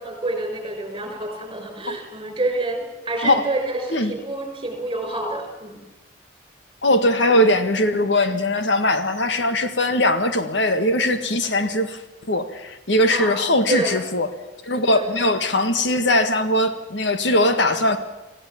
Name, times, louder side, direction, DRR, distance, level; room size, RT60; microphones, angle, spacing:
voice 1, 0.0-5.8 8.3-8.4 11.6-11.7 13.1-13.3 13.7-14.0 14.9-15.1 17.4-17.9, right 2 dB, 25° right, 4 dB, 5.6 m, -28 dB
voice 2, 6.8-12.0 12.3-14.3 14.6-18.0, left 1 dB, 70° left, 8 dB, 1.7 m, -20 dB
26.0 x 15.5 x 7.3 m, 1.1 s
head